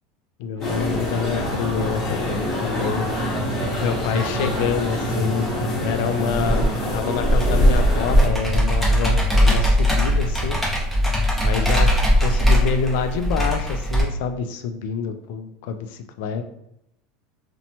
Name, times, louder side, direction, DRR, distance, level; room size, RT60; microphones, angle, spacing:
voice 1, 0.4-3.0 3.8-5.5 5.8-10.6 11.4-11.9 12.2-16.4, left 6 dB, 70° left, 8 dB, 0.3 m, -27 dB
sound 1, 0.6-8.3, equal, 30° left, 0.9 m, -23 dB
sound 2, 0.6-6.8, right 1 dB, 85° right, 0.5 m, -30 dB
Computer keyboard, 7.3-14.0, equal, ahead, 0.7 m, -20 dB
2.8 x 2.1 x 2.7 m, 0.79 s
supercardioid pair, 140°, 0 cm